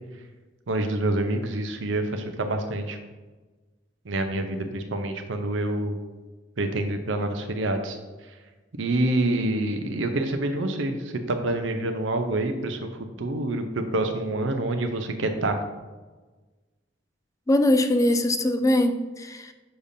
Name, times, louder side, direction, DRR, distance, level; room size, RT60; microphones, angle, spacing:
voice 1, 0.7-3.0 4.0-6.0 6.6-8.4 8.8-15.6, right 2 dB, 85° right, 6 dB, 0.7 m, -27 dB
voice 2, 17.5-19.5, left 1 dB, 15° left, 8 dB, 0.4 m, -22 dB
6.8 x 2.7 x 5.1 m, 1.3 s
head